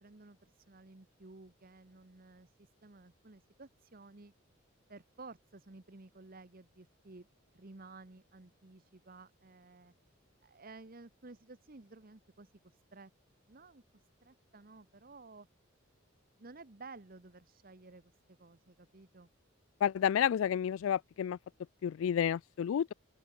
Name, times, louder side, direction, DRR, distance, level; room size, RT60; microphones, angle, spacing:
voice 1, 0.0-4.3 4.9-7.3 7.5-9.9 10.4-13.1 13.5-13.8 14.2-15.5 16.4-19.3, right 3 dB, 45° right, 1.1 m, -54 dB
voice 2, 19.8-21.4 21.8-22.9, left 9 dB, 75° left, 0.3 m, -30 dB
open air
head